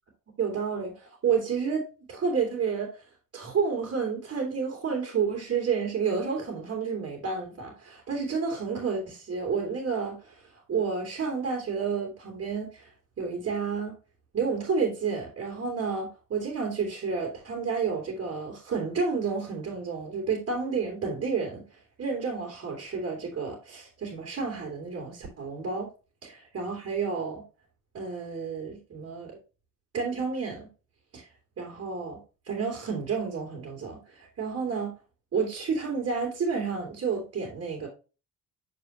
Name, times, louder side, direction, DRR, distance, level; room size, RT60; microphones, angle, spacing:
voice 1, 0.4-1.8 2.1-2.9 3.3-10.4 10.7-12.9 13.2-13.9 14.3-21.6 22.0-25.9 26.2-27.4 27.9-29.3 29.9-30.7 31.1-31.3 31.6-32.2 32.5-34.9 35.3-37.9, right 5 dB, 50° right, 2.9 m, -30 dB
7.3 x 4.7 x 3.1 m
cardioid pair, 90°, 30 cm